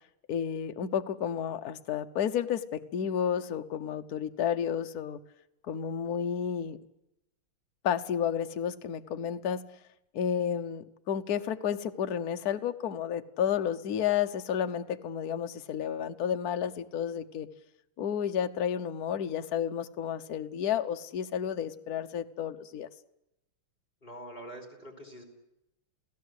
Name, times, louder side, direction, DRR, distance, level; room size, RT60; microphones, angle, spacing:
voice 1, 0.3-5.2 5.7-6.8 7.8-9.6 10.1-17.5 18.0-22.9, left 8 dB, 55° left, 8 dB, 1.3 m, -31 dB
voice 2, 24.0-25.2, right 1 dB, 25° left, 5 dB, 4.9 m, -45 dB
28.0 x 17.0 x 8.1 m, 0.88 s
omnidirectional pair, 2.4 m